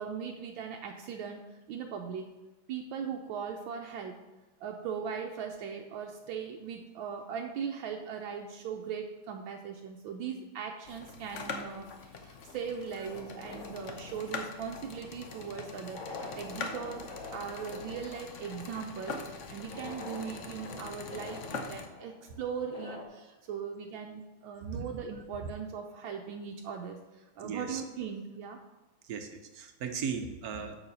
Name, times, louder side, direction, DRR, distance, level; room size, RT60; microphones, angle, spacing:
voice 1, 0.0-2.3 2.7-4.2 4.6-28.6, right 6 dB, 75° right, 2 dB, 1.4 m, -39 dB
sound 1, 10.8-21.8, left 4 dB, 60° left, 0.7 m, -43 dB
sound 2, 13.1-23.0, left 3 dB, 45° left, 1.5 m, -47 dB
voice 2, 27.4-27.8 29.1-30.8, right 6 dB, 60° right, 6 dB, 1.1 m, -37 dB
7.0 x 6.4 x 5.4 m, 1.1 s
omnidirectional pair, 2.3 m